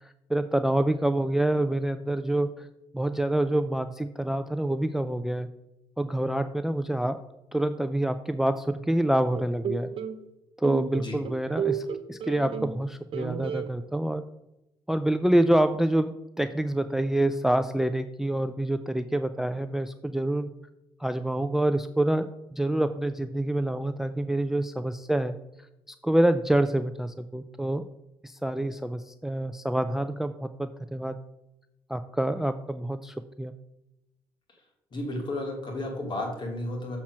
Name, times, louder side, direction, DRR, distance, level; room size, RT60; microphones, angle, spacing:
voice 1, 0.0-2.7 2.9-5.5 6.0-7.2 7.5-9.9 10.6-14.2 14.9-20.5 21.0-25.3 26.0-27.8 28.2-31.2 31.9-33.5, right 1 dB, 5° right, 10 dB, 0.4 m, -27 dB
sound 1, 9.3-10.2 10.6-12.8 13.1-13.7, right 8 dB, 60° right, 0.8 m, -32 dB
voice 2, 34.9-37.0, left 1 dB, 50° left, 0 dB, 2.8 m, -33 dB
7.1 x 4.4 x 6.2 m, 0.90 s
cardioid pair, 85°, 10 cm